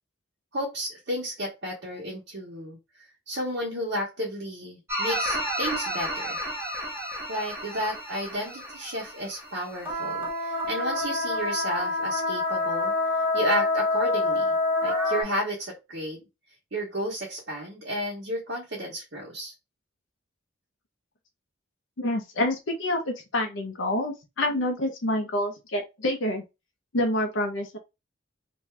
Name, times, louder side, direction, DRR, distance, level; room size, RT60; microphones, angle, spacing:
voice 1, 0.5-2.8 3.3-6.4 7.3-12.9 13.3-14.5 14.8-16.2 16.7-19.5, equal, 60° right, 1.0 m, -32 dB
sound 1, 4.9-9.5 9.8-15.2, left 2 dB, 10° right, 0.9 m, -28 dB
voice 2, 22.0-26.4 26.9-27.8, left 1 dB, 70° left, 0.6 m, -27 dB
2.6 x 2.3 x 3.2 m
head